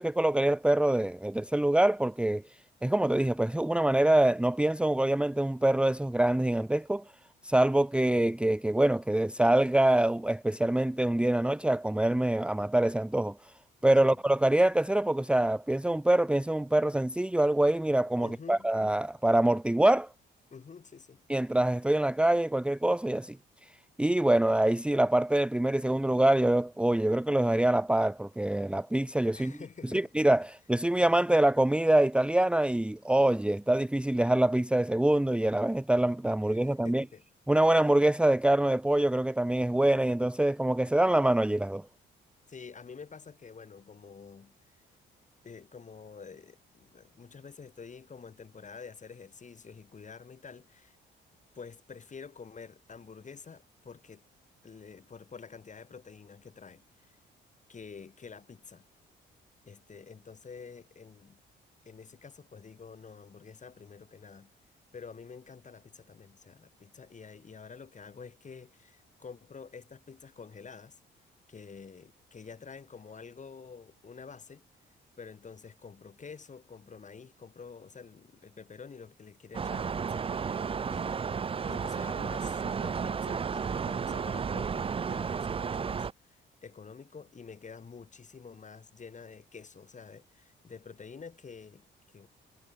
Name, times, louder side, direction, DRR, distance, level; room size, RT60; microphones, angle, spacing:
voice 1, 0.0-2.4 2.8-7.0 7.4-13.4 13.8-20.1 21.3-23.4 24.0-29.5 29.9-37.0 37.5-41.8, right 1 dB, 5° right, 0.9 m, -25 dB
voice 2, 18.2-18.7 20.5-21.2 29.3-30.1 36.5-37.2 42.5-44.8 45.4-51.0 51.5-54.2 54.6-57.2 57.7-58.9 59.7-61.4 61.9-64.5 64.9-71.0 71.5-74.6 75.2-81.4 81.7-92.3, left 5 dB, 40° left, 5.8 m, -48 dB
sound 1, 79.5-86.1, right 6 dB, 30° right, 0.5 m, -33 dB
cardioid pair, 90°, 20 cm